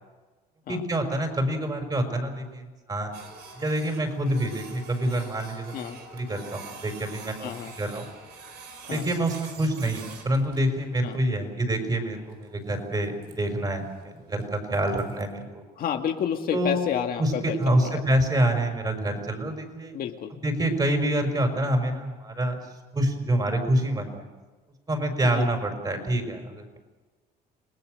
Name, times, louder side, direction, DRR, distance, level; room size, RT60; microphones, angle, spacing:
voice 1, 0.7-3.2 3.5-8.1 8.9-15.6 16.5-16.9 17.2-19.9 20.3-22.6 22.9-24.2 24.9-26.8, right 1 dB, 25° right, 5 dB, 5.3 m, -27 dB
Printer, 3.1-15.2, right 4 dB, 85° right, 4.7 m, -46 dB
voice 2, 7.4-7.7 8.9-9.1 11.0-11.2 15.8-18.0 19.9-20.3 25.2-25.5, left 8 dB, 60° left, 4 dB, 1.9 m, -30 dB
28.5 x 19.0 x 6.5 m, 1.3 s
cardioid pair, 110°, 17 cm